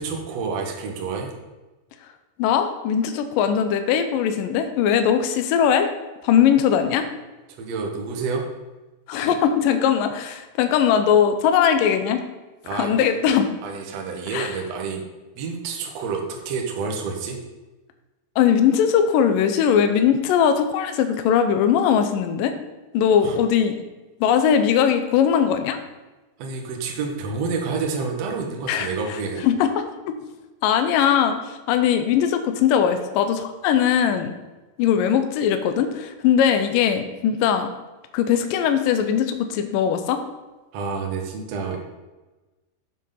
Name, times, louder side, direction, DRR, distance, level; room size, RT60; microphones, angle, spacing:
voice 1, 0.0-1.3 7.5-8.4 9.2-9.4 12.6-12.9 13.6-15.0 15.3-17.4 23.2-23.4 26.4-29.4 40.7-41.8, right 4 dB, 75° right, 1 dB, 1.5 m, -29 dB
voice 2, 2.4-5.9 6.2-7.1 9.1-12.2 12.7-13.5 14.3-14.5 18.4-22.5 22.9-23.8 24.2-25.8 28.7-28.9 29.4-30.2 30.6-34.3 34.8-37.7 38.1-40.2, left 8 dB, 80° left, 8 dB, 2.0 m, -20 dB
7.8 x 6.9 x 5.6 m, 1.1 s
omnidirectional pair, 4.7 m